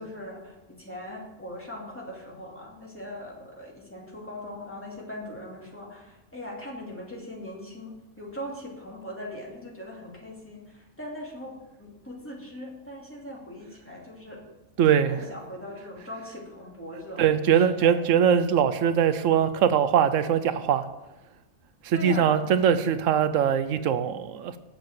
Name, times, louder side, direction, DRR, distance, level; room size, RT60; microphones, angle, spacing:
voice 1, 0.0-14.4 15.1-17.9 21.9-22.4, left 1 dB, 10° left, -4 dB, 2.5 m, -40 dB
voice 2, 14.8-15.2 17.2-20.9 21.8-24.6, right 8 dB, 85° right, 11 dB, 1.0 m, -22 dB
7.7 x 7.0 x 7.6 m, 1.0 s
omnidirectional pair, 1.3 m